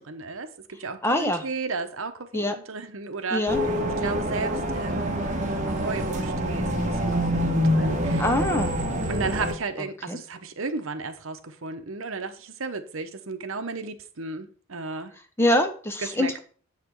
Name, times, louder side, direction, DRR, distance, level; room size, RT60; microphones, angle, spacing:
voice 1, 0.0-8.3 9.1-15.1 16.0-16.4, right 3 dB, 65° right, 0.9 m, -34 dB
voice 2, 1.0-1.4 2.3-2.6 3.3-3.6 8.2-8.8 10.1-10.2 15.4-16.4, left 1 dB, 10° left, 0.7 m, -24 dB
sound 1, 3.5-9.5, equal, 35° right, 1.4 m, -26 dB
7.5 x 5.9 x 4.5 m
head